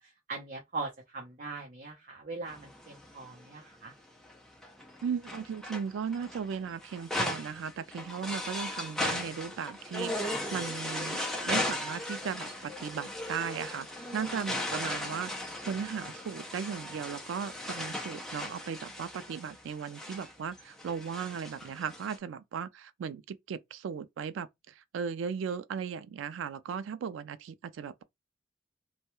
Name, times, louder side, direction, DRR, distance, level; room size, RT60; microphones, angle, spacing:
voice 1, 0.0-3.9, right 3 dB, 45° right, 0.6 m, -41 dB
sound 1, 2.5-3.6 4.2-22.2, left 1 dB, ahead, 0.4 m, -37 dB
voice 2, 5.0-13.9 14.1-15.3 15.6-28.0, right 7 dB, 90° right, 0.3 m, -37 dB
2.2 x 2.1 x 2.9 m
head